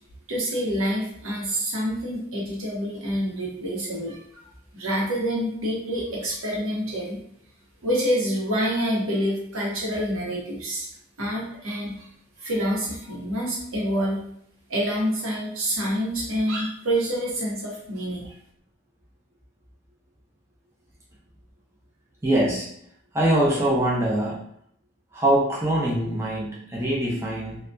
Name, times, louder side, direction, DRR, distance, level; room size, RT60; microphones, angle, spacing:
voice 1, 0.3-4.4 4.7-7.2 7.8-10.9 11.2-12.1 12.4-14.2 14.7-18.3, equal, 90° right, -3 dB, 0.8 m, -27 dB
voice 2, 22.2-22.7 23.1-24.4 25.1-27.6, right 1 dB, 15° right, -5 dB, 0.4 m, -23 dB
2.6 x 2.2 x 2.2 m, 0.68 s
head